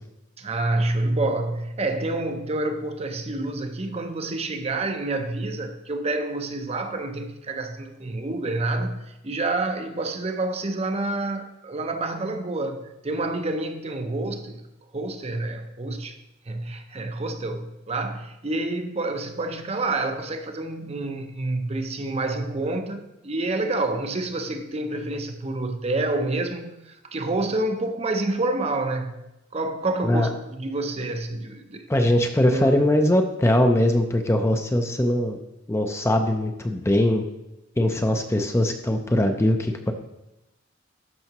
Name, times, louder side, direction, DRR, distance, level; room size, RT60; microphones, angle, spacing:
voice 1, 0.4-14.6 14.9-16.2 16.5-29.2 29.5-31.9 32.5-32.8, right 2 dB, 35° right, 0.6 m, -28 dB
voice 2, 31.9-35.4 35.7-37.2 37.8-39.9, left 1 dB, 15° left, 0.5 m, -21 dB
12.0 x 5.6 x 3.0 m
head